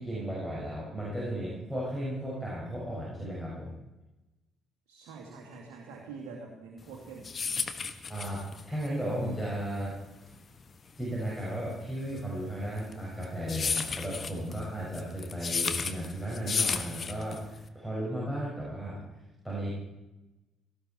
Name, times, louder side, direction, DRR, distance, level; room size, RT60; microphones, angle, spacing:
voice 1, 0.0-3.7 8.1-10.0 11.0-19.7, equal, ahead, -5 dB, 6.1 m, -35 dB
voice 2, 4.9-7.8, right 4 dB, 60° right, 0 dB, 2.6 m, -46 dB
sound 1, 6.9-17.7, left 5 dB, 35° left, 1.4 m, -34 dB
18.0 x 15.5 x 4.5 m, 1.0 s
figure-of-eight pair, 45°, 0 cm